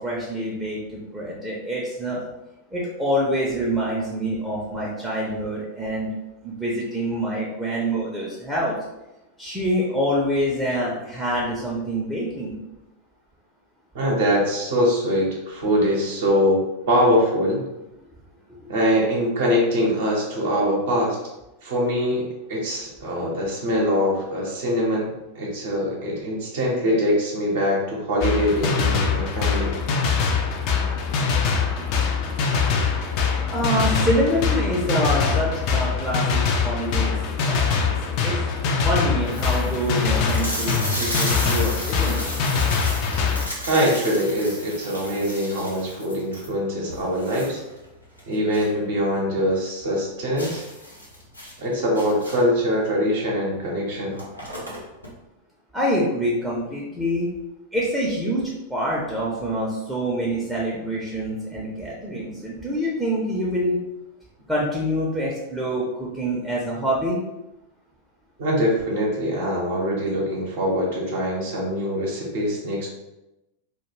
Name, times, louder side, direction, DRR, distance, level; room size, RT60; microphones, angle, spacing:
voice 1, 0.0-2.3 2.7-6.1 6.4-8.7 9.4-12.6 18.6-18.7 33.5-37.1 37.5-37.6 38.2-38.4 38.8-42.2 55.7-57.3 57.7-63.8 64.5-67.2, equal, 5° right, -5 dB, 0.5 m, -26 dB
voice 2, 13.9-17.7 18.7-21.2 21.6-29.8 43.7-47.6 48.3-50.6 51.6-54.2 68.4-72.9, equal, 55° right, -3 dB, 0.7 m, -23 dB
sound 1, 28.2-43.5, left 5 dB, 45° left, 0.4 m, -23 dB
sound 2, 37.7-37.9 38.5-38.6 38.8-38.9 39.2-48.8 49.1-49.2 49.6-49.7 50.4-52.6 53.5-53.7 53.9-55.1, equal, 85° left, 0.7 m, -34 dB
2.2 x 2.2 x 3.0 m, 0.96 s
figure-of-eight pair, 90°, 0 cm